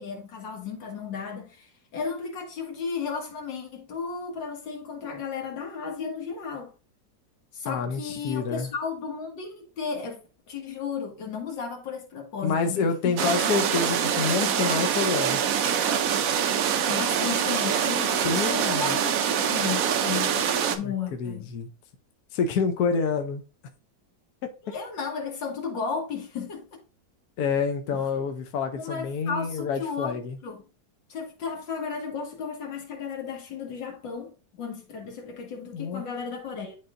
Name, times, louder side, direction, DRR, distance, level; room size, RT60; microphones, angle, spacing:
voice 1, 0.0-6.7 7.5-10.2 10.5-13.3 16.5-19.1 19.4-21.5 24.6-26.6 27.9-28.0 28.7-30.2 30.4-30.6 31.1-34.3 34.6-36.8, left 6 dB, 90° left, 2.3 m, -34 dB
voice 2, 7.6-8.7 12.4-15.4 18.2-19.0 20.7-20.9 21.2-21.7 22.3-23.4 24.4-24.5 27.4-30.4 35.7-36.0, left 5 dB, 65° left, 1.2 m, -28 dB
sound 1, 13.2-20.8, right 8 dB, 65° right, 0.9 m, -25 dB
10.5 x 3.8 x 2.5 m
omnidirectional pair, 1.9 m